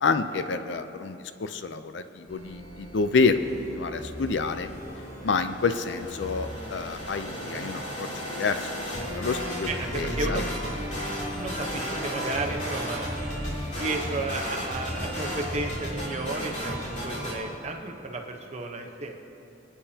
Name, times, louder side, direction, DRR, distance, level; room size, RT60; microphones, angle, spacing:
voice 1, 0.0-4.7 5.2-8.7 9.2-9.7 9.9-10.4, left 4 dB, 75° left, 10 dB, 0.5 m, -28 dB
sound 1, 2.3-17.4, equal, 45° left, 2.8 m, -34 dB
voice 2, 9.7-10.5 11.0-13.2 13.8-19.2, right 2 dB, 40° right, 2 dB, 1.0 m, -33 dB
24.0 x 8.8 x 2.9 m, 2.8 s
head